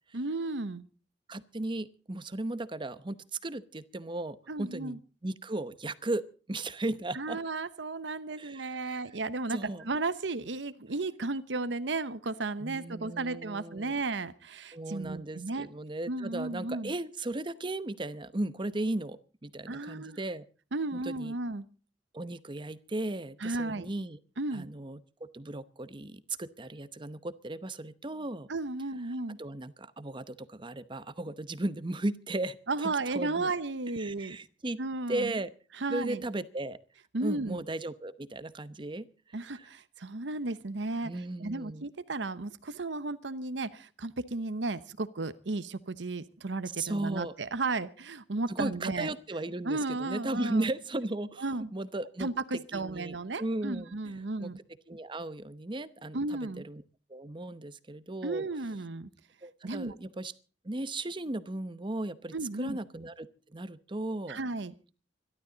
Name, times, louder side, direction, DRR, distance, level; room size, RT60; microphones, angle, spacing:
voice 1, 0.1-0.9 4.5-5.0 7.1-15.7 16.1-16.9 19.7-20.2 20.7-21.7 23.4-23.9 24.4-24.7 28.5-29.4 32.7-34.4 34.8-35.3 35.8-36.2 37.1-37.6 39.3-41.1 41.4-49.1 49.6-50.7 51.4-51.7 52.2-52.3 52.7-54.6 56.1-56.6 58.2-59.1 59.6-60.0 62.3-62.8 64.3-64.7, right 3 dB, 85° right, 15 dB, 0.9 m, -34 dB
voice 2, 1.3-3.2 3.4-6.2 6.5-7.4 8.4-9.0 9.5-9.8 12.6-13.9 14.7-20.5 20.9-21.3 22.1-24.2 24.5-28.5 29.4-33.5 34.0-34.8 35.1-35.5 35.9-36.8 37.2-39.1 39.5-39.7 41.0-41.8 46.8-47.3 48.5-54.1 54.4-54.5 54.9-56.8 57.1-58.5 59.4-60.3 60.6-64.4, right 2 dB, 25° right, 14 dB, 0.8 m, -36 dB
24.5 x 12.5 x 3.9 m, 0.37 s
head